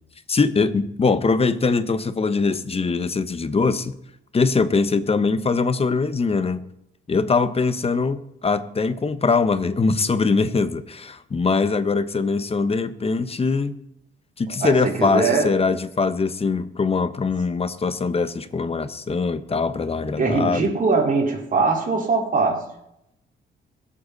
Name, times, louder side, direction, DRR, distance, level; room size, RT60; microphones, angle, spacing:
voice 1, 0.3-4.0 4.3-6.6 7.1-13.8 14.4-20.7, left 4 dB, 30° left, 12 dB, 1.1 m, -22 dB
voice 2, 14.6-15.5 20.2-22.6, right 4 dB, 40° right, 0 dB, 4.4 m, -21 dB
22.5 x 8.6 x 4.1 m, 0.80 s
cardioid pair, 90°, 20 cm